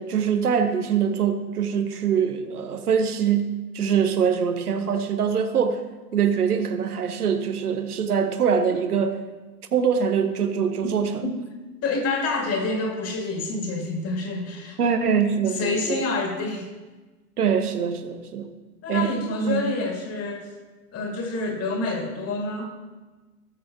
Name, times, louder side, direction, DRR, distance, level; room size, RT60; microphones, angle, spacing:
voice 1, 0.0-5.8 6.1-9.2 9.7-11.2 14.8-15.8 17.4-18.5 18.9-19.6, right 7 dB, 80° right, 7 dB, 1.0 m, -23 dB
voice 2, 11.8-14.8 15.5-16.7 18.8-20.5 20.9-22.6, left 3 dB, 35° left, 1 dB, 2.4 m, -27 dB
18.0 x 6.3 x 3.0 m, 1.2 s
hypercardioid pair, 95°, 45 cm